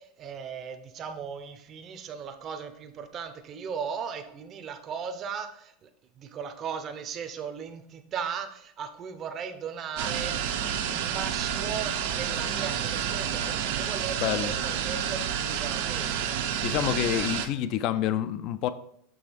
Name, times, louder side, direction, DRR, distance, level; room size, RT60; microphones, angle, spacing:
voice 1, 0.0-5.9 6.2-16.4, right 6 dB, 30° right, 7 dB, 0.6 m, -37 dB
sound 1, 10.0-17.5, right 8 dB, 70° right, 0.7 m, -29 dB
voice 2, 14.2-14.5 16.6-18.7, left 11 dB, 45° left, 13 dB, 0.4 m, -28 dB
6.2 x 3.3 x 5.0 m, 0.70 s
supercardioid pair, 140°, 0 cm